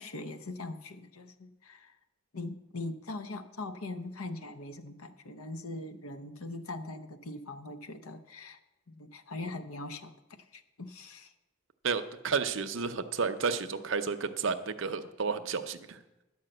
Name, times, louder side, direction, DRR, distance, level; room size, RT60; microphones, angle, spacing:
voice 1, 0.0-2.0 2.3-8.6 8.9-10.2 10.5-11.3, left 2 dB, 80° left, 10 dB, 0.8 m, -41 dB
voice 2, 11.8-16.0, right 5 dB, 60° right, 9 dB, 0.6 m, -31 dB
11.0 x 5.5 x 7.7 m, 1.0 s
head